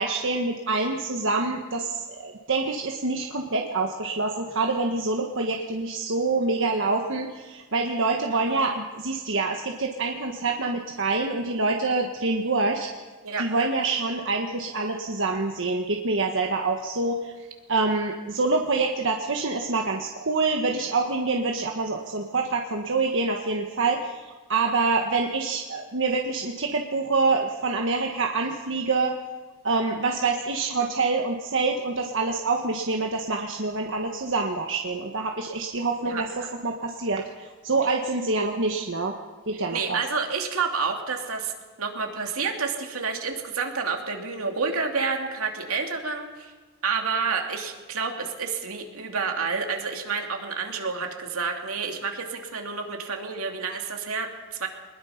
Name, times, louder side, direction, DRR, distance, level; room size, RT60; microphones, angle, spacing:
voice 1, 0.0-12.9 13.4-24.1 24.5-29.2 29.6-39.1 39.5-40.0, right 3 dB, 60° right, 2 dB, 1.3 m, -26 dB
voice 2, 39.7-41.5 41.8-46.5 46.8-54.7, right 5 dB, 80° right, 3 dB, 2.8 m, -29 dB
23.0 x 21.0 x 5.8 m, 1.4 s
head